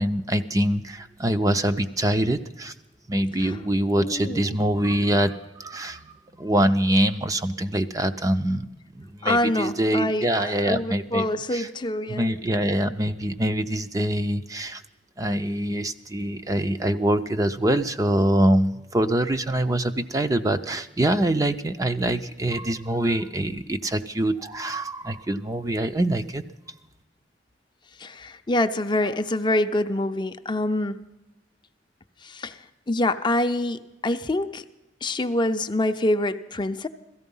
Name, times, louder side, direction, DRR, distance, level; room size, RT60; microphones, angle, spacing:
voice 1, 0.0-2.7 3.1-8.7 8.9-11.3 11.5-11.7 12.1-14.8 15.2-26.4, right 1 dB, 20° right, 0.5 m, -24 dB
voice 2, 4.0-4.5 9.2-12.3 28.0-31.1 32.2-34.6 35.0-36.9, left 1 dB, 25° left, 0.6 m, -26 dB
17.0 x 14.0 x 5.5 m
head